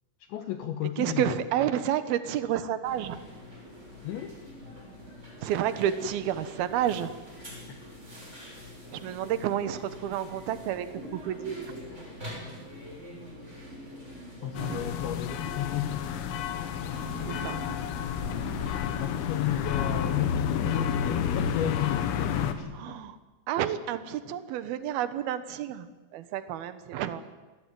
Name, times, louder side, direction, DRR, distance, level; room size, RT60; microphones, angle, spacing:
voice 1, 0.3-1.5 4.0-4.4 7.7-7.8 14.4-16.1 19.0-22.8 24.2-24.4, left 11 dB, 70° left, 8 dB, 3.1 m, -33 dB
voice 2, 1.0-3.2 5.4-7.1 9.0-10.9 11.1-11.7 14.5-14.9 16.9-17.6 22.7-23.2 23.5-27.2, right 10 dB, 75° right, 12 dB, 2.3 m, -30 dB
sound 1, 2.8-19.2, left 1 dB, 10° right, 7.5 m, -45 dB
sound 2, 14.6-22.5, left 8 dB, 90° left, 4.4 m, -30 dB
sound 3, 17.0-19.0, right 3 dB, 45° right, 3.3 m, -44 dB
28.0 x 19.5 x 9.2 m, 1.2 s
omnidirectional pair, 6.0 m